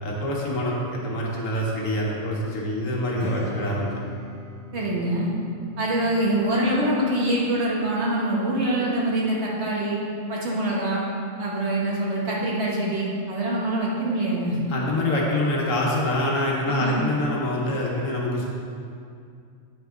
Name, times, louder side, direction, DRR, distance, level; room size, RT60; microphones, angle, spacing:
voice 1, 0.0-3.9 14.7-18.5, left 1 dB, 75° left, -3 dB, 1.6 m, -25 dB
Strum, 3.2-8.4, left 2 dB, 20° right, 0.9 m, -40 dB
voice 2, 4.7-5.3 5.8-10.0 10.3-11.0 11.4-14.6 16.7-17.0, right 1 dB, 60° right, -4 dB, 1.5 m, -24 dB
8.1 x 5.8 x 3.8 m, 2.4 s
omnidirectional pair, 1.4 m